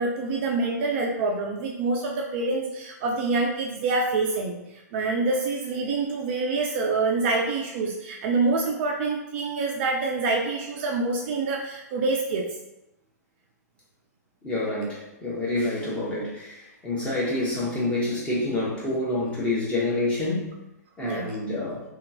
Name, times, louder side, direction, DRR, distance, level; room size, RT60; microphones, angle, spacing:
voice 1, 0.0-4.6 4.9-12.5 21.0-21.3, right 3 dB, 40° right, 0 dB, 0.4 m, -26 dB
voice 2, 14.4-20.5 21.0-21.8, left 2 dB, 10° left, -7 dB, 1.0 m, -27 dB
2.8 x 2.4 x 2.7 m, 0.91 s
figure-of-eight pair, 110°, 9 cm